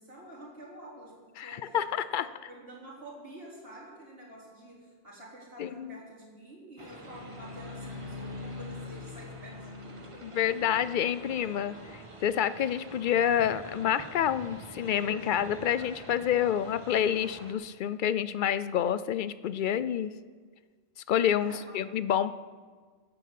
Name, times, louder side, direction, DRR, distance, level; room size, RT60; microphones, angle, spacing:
voice 1, 0.0-1.9 2.2-10.4 21.4-21.8, right 1 dB, 65° right, -5 dB, 4.3 m, -48 dB
voice 2, 1.4-2.3 5.6-5.9 10.3-11.8 12.2-20.1 21.1-22.3, left 9 dB, 55° left, 14 dB, 0.6 m, -28 dB
sound 1, 6.8-17.5, right 2 dB, 30° right, 1.4 m, -47 dB
Bowed string instrument, 7.0-10.5, left 4 dB, 75° left, 2.2 m, -43 dB
14.0 x 7.9 x 8.4 m, 1.5 s
omnidirectional pair, 1.1 m